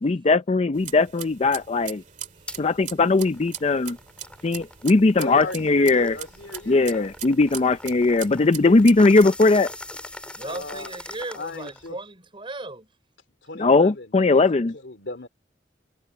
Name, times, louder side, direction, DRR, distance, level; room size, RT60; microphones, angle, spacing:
voice 1, 0.0-2.0 2.6-4.0 4.4-6.2 6.7-9.7 13.6-14.7, left 3 dB, 35° left, 0.5 m, -19 dB
sound 1, 0.7-9.2, right 10 dB, 45° right, 2.0 m, -40 dB
sound 2, 2.5-2.6 3.1-11.9, left 1 dB, 5° left, 2.8 m, -43 dB
voice 2, 5.2-7.1 8.6-8.8 10.4-11.0 11.3-12.0 13.4-15.3, left 2 dB, 80° left, 2.7 m, -36 dB
voice 3, 10.3-12.9, right 2 dB, 30° right, 5.6 m, -36 dB
head